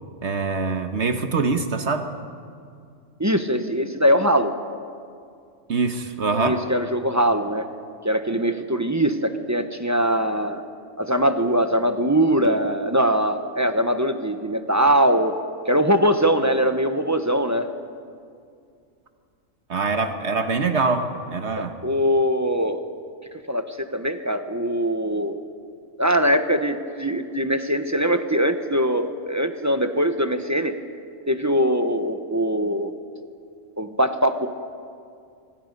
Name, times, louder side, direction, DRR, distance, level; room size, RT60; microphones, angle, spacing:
voice 1, 0.2-2.1 5.7-6.6 19.7-21.7, right 4 dB, 60° right, 7 dB, 1.5 m, -24 dB
voice 2, 3.2-4.5 6.4-7.7 8.0-10.6 11.0-15.3 15.7-17.7 21.6-22.8 23.5-25.4 26.0-30.7 31.3-32.9 33.8-34.5, equal, 15° right, 8 dB, 0.8 m, -22 dB
25.0 x 24.5 x 5.4 m, 2.3 s
omnidirectional pair, 1.3 m